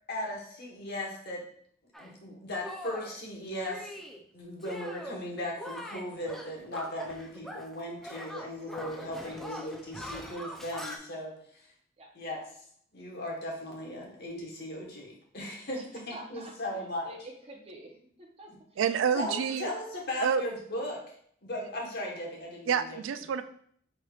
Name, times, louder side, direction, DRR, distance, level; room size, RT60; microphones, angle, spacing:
voice 1, 0.1-1.4 2.0-3.9 4.3-11.7 12.1-12.4 12.9-15.8 16.1-17.1 19.1-21.0 21.4-23.0, left 1 dB, 55° left, -1 dB, 1.2 m, -37 dB
Shatter, 1.9-2.1 2.6-3.2 3.6-4.2 4.6-5.2 5.6-7.8 8.0-11.0, equal, ahead, 0.4 m, -42 dB
voice 2, 9.2-9.7 12.0-12.1 14.0-14.1 15.7-16.5 17.0-18.8 19.3-19.8, right 1 dB, 30° right, 1 dB, 0.8 m, -48 dB
voice 3, 18.8-19.7 20.2-20.4 22.7-23.4, right 7 dB, 85° right, 11 dB, 0.3 m, -28 dB
4.8 x 4.3 x 2.3 m, 0.63 s
head